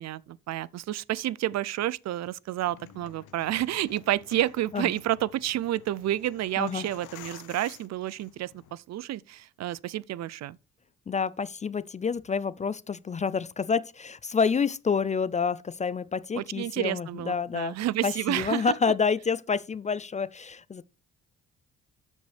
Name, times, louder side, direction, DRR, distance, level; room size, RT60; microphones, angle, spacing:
voice 1, 0.0-10.6 16.3-18.7, right 13 dB, 60° right, 0.5 m, -30 dB
sound 1, 2.6-8.7, left 11 dB, 85° left, 0.9 m, -51 dB
voice 2, 11.1-17.7 18.0-20.8, left 5 dB, 25° left, 0.3 m, -28 dB
13.0 x 5.3 x 3.3 m
cardioid pair, 90°, 30 cm